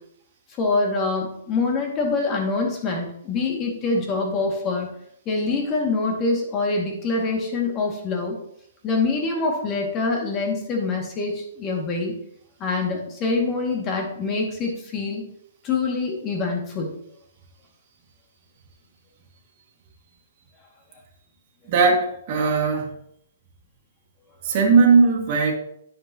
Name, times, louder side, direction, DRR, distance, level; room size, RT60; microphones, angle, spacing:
voice 1, 0.6-4.9 5.3-8.4 8.8-12.2 12.6-15.2 15.6-16.9, left 3 dB, 25° left, 1 dB, 2.2 m, -25 dB
voice 2, 21.7-22.9 24.4-25.5, right 4 dB, 40° right, -1 dB, 2.2 m, -18 dB
10.0 x 7.3 x 3.0 m, 0.70 s
hypercardioid pair, 145°, 0 cm